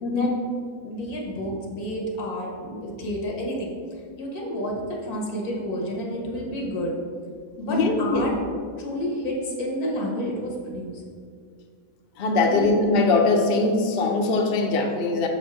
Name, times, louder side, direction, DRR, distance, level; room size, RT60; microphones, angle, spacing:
voice 1, 0.0-0.3 7.7-8.3 12.2-15.3, left 3 dB, 55° left, 2 dB, 0.8 m, -21 dB
voice 2, 0.8-3.7 4.2-6.9 7.6-8.3 8.8-11.0 12.4-12.7, equal, 85° left, -1 dB, 1.7 m, -30 dB
6.1 x 4.4 x 5.0 m, 2.1 s
omnidirectional pair, 1.5 m